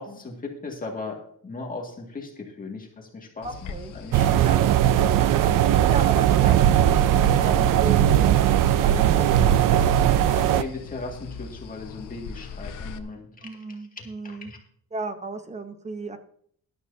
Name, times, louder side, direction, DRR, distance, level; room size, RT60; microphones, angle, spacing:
voice 1, 0.0-4.6 5.9-6.1 7.3-7.6 9.7-9.9 10.3-14.6, left 3 dB, 25° left, 0 dB, 2.1 m, -38 dB
sound 1, 3.4-13.0, left 5 dB, 75° left, 1.0 m, -41 dB
voice 2, 3.4-3.9 4.4-4.7 5.2-5.6 5.9-10.6 13.4-14.5 14.9-16.2, right 3 dB, 20° right, 8 dB, 0.9 m, -36 dB
sound 2, 4.1-10.6, right 11 dB, 85° right, 0.6 m, -19 dB
12.5 x 12.0 x 2.8 m, 0.63 s
wide cardioid pair, 160°, 31 cm